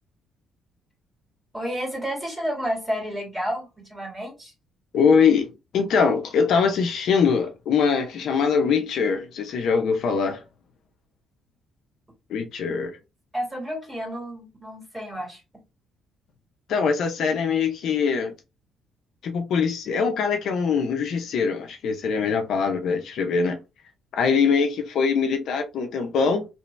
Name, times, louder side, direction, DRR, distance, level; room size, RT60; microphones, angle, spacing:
voice 1, 1.5-4.5 13.3-15.4, equal, 10° right, 2.1 m, -31 dB
voice 2, 4.9-10.4 12.3-13.0 16.7-18.3 19.2-23.6 24.1-26.5, left 5 dB, 70° left, 0.6 m, -22 dB
3.0 x 2.7 x 3.2 m
cardioid pair, 90°, 0 cm